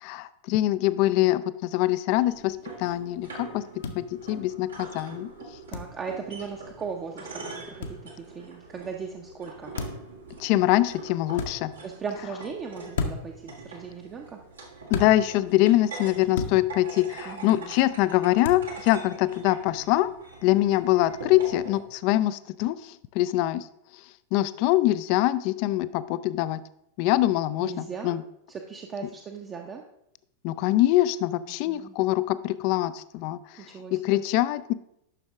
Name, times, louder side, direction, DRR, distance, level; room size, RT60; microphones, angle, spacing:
voice 1, 0.0-3.6 3.9-5.3 10.4-11.7 14.9-20.1 20.4-23.7 24.3-26.6 27.0-28.2 30.4-33.4 33.9-34.7, left 15 dB, 45° left, 15 dB, 0.4 m, -24 dB
sound 1, 2.2-21.8, right 3 dB, 75° right, 1.6 m, -43 dB
sound 2, 3.8-4.0 5.7-5.9 7.8-8.0 9.7-10.1 11.3-11.5 12.9-13.4 14.9-15.1 16.3-16.6 18.4-18.6, left 4 dB, 60° left, 0.8 m, -31 dB
voice 2, 5.7-9.7 11.8-14.4 17.2-17.7 27.6-28.1 28.5-29.8 31.5-31.9 33.6-34.2, right 6 dB, 25° right, 2 dB, 0.7 m, -38 dB
9.9 x 6.1 x 3.5 m, 0.79 s
figure-of-eight pair, 90°, 0 cm